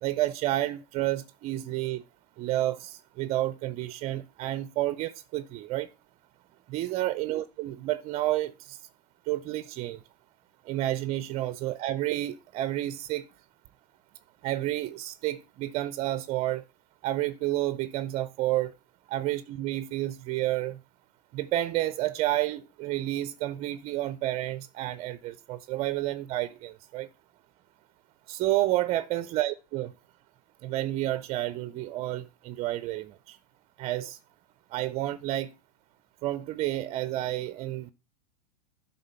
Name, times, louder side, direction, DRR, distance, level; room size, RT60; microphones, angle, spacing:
voice 1, 0.0-2.0 2.4-5.9 6.7-8.8 9.3-10.0 10.7-13.3 14.4-16.6 17.0-18.7 19.1-20.8 21.3-27.1 28.3-29.9 30.6-33.4 33.8-34.2 34.7-35.5 36.2-37.9, right 15 dB, 30° right, 0.4 m, -30 dB
11.0 x 3.7 x 5.6 m
hypercardioid pair, 110°, 21 cm